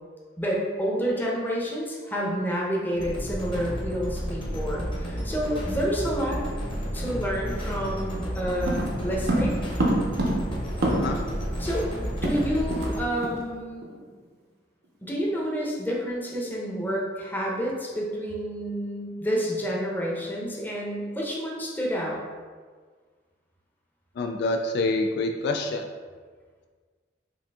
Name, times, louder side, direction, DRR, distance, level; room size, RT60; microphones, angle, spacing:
voice 1, 0.4-6.5 6.9-9.6 11.6-13.9 15.0-22.2, equal, 10° left, -3 dB, 0.8 m, -29 dB
sound 1, 3.0-13.0, equal, 30° left, 1.1 m, -32 dB
sound 2, 8.7-11.3 11.6-11.7 11.9-13.0 13.2-13.4 13.8-14.0, right 1 dB, 60° right, 0.7 m, -27 dB
voice 2, 24.2-25.9, left 2 dB, 65° left, 4 dB, 0.3 m, -26 dB
5.0 x 2.6 x 3.5 m, 1.6 s
head